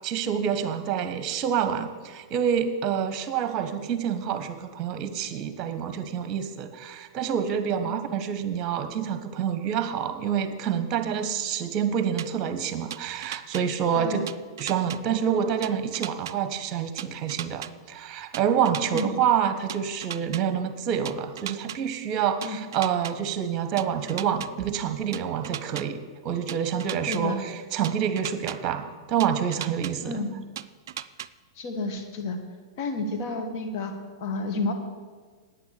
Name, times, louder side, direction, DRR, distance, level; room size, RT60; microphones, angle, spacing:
voice 1, 0.0-14.2 14.6-26.0 26.2-30.2, right 8 dB, 35° right, 9 dB, 1.2 m, -27 dB
sound 1, 12.2-12.3 12.9-13.6 14.3-15.0 15.6-16.3 17.0-17.7 18.3-19.1 19.7-20.4 21.0-21.8 22.4-23.1 23.8-24.5 25.1-25.8 26.5-27.2 27.8-28.6 29.2-29.9 30.6-31.3, right 10 dB, 60° right, 0.4 m, -36 dB
voice 2, 27.1-27.4 30.0-30.4 31.6-32.4 32.8-33.9 34.2-34.7, left 2 dB, 50° left, 4 dB, 1.8 m, -30 dB
10.0 x 8.9 x 6.9 m, 1.5 s
figure-of-eight pair, 100°, 2 cm